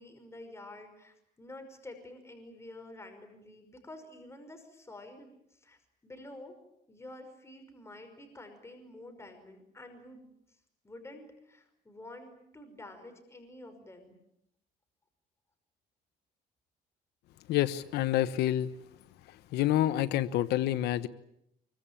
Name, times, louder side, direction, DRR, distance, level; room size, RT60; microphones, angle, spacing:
voice 1, 0.0-6.5 6.9-10.3 10.8-14.2, left 1 dB, 15° left, 6 dB, 5.5 m, -49 dB
voice 2, 17.5-18.7 19.3-21.1, left 13 dB, 80° left, 12 dB, 1.0 m, -28 dB
25.0 x 23.5 x 8.9 m, 0.78 s
cardioid pair, 110°, 17 cm